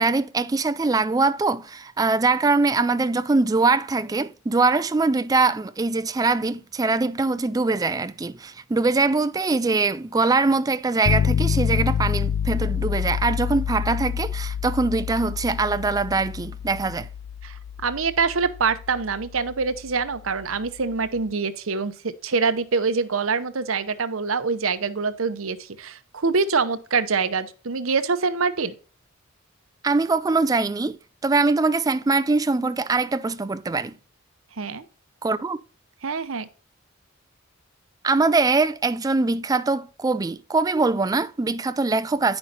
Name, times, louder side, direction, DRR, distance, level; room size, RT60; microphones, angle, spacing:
voice 1, 0.0-17.1 29.8-31.0 31.2-33.9 35.2-35.6 38.0-42.4, right 3 dB, 20° right, 0.3 m, -22 dB
sound 1, 11.1-20.9, left 7 dB, 80° left, 0.4 m, -28 dB
voice 2, 17.8-28.7 34.6-34.8 36.0-36.5, right 4 dB, 75° right, 0.8 m, -25 dB
9.7 x 5.8 x 4.0 m
head